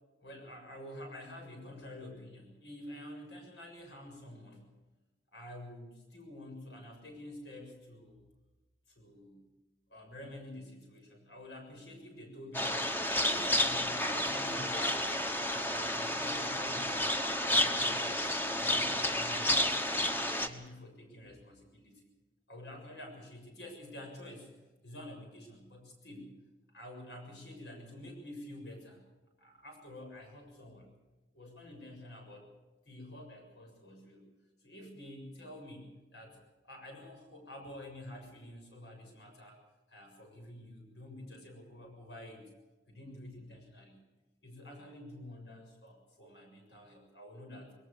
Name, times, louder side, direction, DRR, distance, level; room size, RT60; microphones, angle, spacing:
voice 1, 0.2-4.6 5.3-8.2 8.9-9.4 9.9-12.9 13.3-15.2 15.5-17.1 17.5-22.1 22.5-24.5 24.8-26.3 26.7-29.0 29.4-30.9 31.3-32.5 32.9-34.3 34.6-36.4 36.6-39.6 39.9-42.5 42.9-44.0 44.4-47.7, left 1 dB, 80° left, 3 dB, 7.1 m, -49 dB
sound 1, 12.5-20.5, left 1 dB, 10° left, 1.1 m, -31 dB
21.5 x 19.0 x 6.8 m, 1.1 s
head